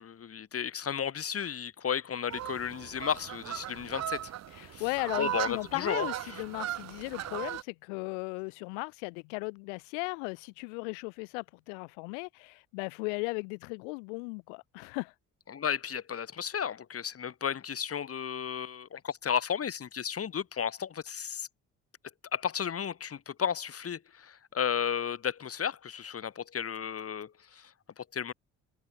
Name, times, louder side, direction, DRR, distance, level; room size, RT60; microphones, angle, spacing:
voice 1, 0.0-4.3 4.7-4.8 5.2-6.1 15.5-21.5 22.3-27.7 28.0-28.3, left 8 dB, 40° left, 1.4 m, -33 dB
sound 1, 2.3-7.6, right 12 dB, 45° right, 0.8 m, -37 dB
voice 2, 4.5-15.1, left 35 dB, 80° left, 0.6 m, -36 dB
hypercardioid pair, 50°, 36 cm